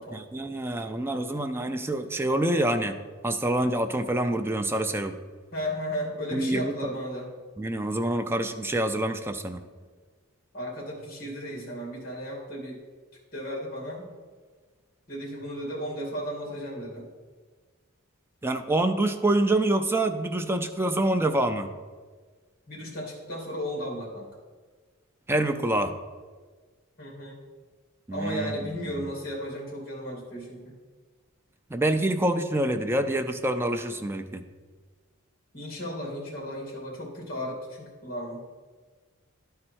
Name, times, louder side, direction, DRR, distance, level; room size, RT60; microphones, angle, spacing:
voice 1, 0.1-3.0 3.2-5.2 6.3-6.7 7.6-9.6 18.4-21.7 25.3-25.9 28.1-28.6 29.0-29.1 31.7-34.4, right 1 dB, 10° right, 7 dB, 0.4 m, -26 dB
voice 2, 5.5-7.3 10.5-12.8 13.3-14.0 15.1-17.1 22.7-24.3 27.0-27.4 28.1-30.7 35.5-38.5, equal, 45° left, -3 dB, 2.6 m, -35 dB
11.5 x 4.3 x 4.4 m, 1.5 s
head